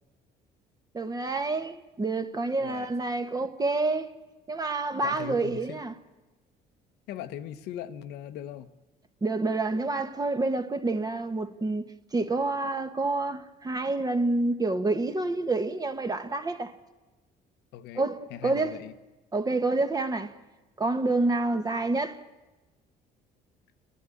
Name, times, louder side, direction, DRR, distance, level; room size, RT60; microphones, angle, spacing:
voice 1, 0.9-4.1 4.5-5.9 9.2-16.7 17.9-18.8 19.3-20.3 20.8-22.2, right 2 dB, 20° right, 1.3 m, -28 dB
voice 2, 5.0-5.8 7.1-8.7 17.7-18.0 18.3-18.9, left 10 dB, 85° left, 1.0 m, -40 dB
30.0 x 11.5 x 8.7 m
cardioid pair, 110°, 17 cm